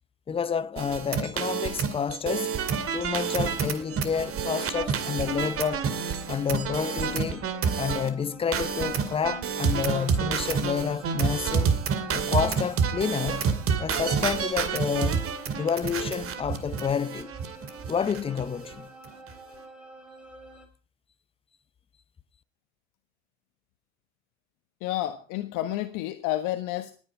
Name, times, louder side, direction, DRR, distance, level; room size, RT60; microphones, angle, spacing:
voice 1, 0.3-2.6 2.9-5.8 6.3-7.5 7.8-11.8 12.1-13.4 13.8-15.2 15.5-17.3 17.9-18.9, left 7 dB, 15° left, 0.7 m, -29 dB
sound 1, 0.8-8.1 8.5-18.4 18.7-18.8 19.1-19.3, right 6 dB, 35° right, 2.3 m, -28 dB
sound 2, 2.3-20.7, right 2 dB, 5° right, 4.1 m, -49 dB
voice 2, 24.8-26.9, left 14 dB, 50° left, 1.5 m, -30 dB
19.5 x 9.7 x 4.6 m
hypercardioid pair, 85°, 39 cm